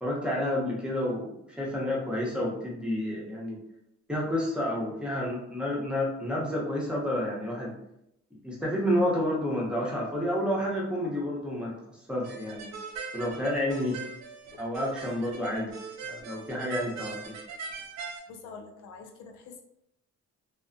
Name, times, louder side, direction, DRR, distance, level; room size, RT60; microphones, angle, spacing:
voice 1, 0.0-3.6 4.1-7.7 8.3-11.7 12.1-12.7 13.1-14.0 14.6-15.7 16.1-17.3, left 1 dB, 5° right, -4 dB, 0.9 m, -30 dB
sound 1, 12.2-18.2, right 5 dB, 65° right, 0.6 m, -41 dB
voice 2, 18.3-19.6, left 4 dB, 85° left, 3 dB, 0.5 m, -46 dB
2.7 x 2.2 x 2.5 m, 0.80 s
cardioid pair, 90°, 30 cm